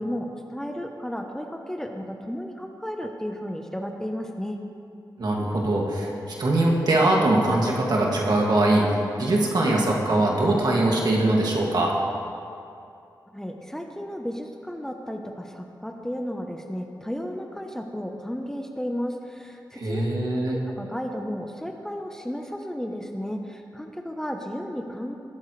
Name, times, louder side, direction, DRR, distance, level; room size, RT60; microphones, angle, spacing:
voice 1, 0.0-4.6 13.3-20.1 20.5-25.2, equal, 5° left, 3 dB, 0.9 m, -33 dB
voice 2, 5.2-6.1 6.4-11.9 19.7-20.6, right 2 dB, 60° right, -2 dB, 2.2 m, -22 dB
19.0 x 9.1 x 3.3 m, 2.5 s
cardioid pair, 75°, 8 cm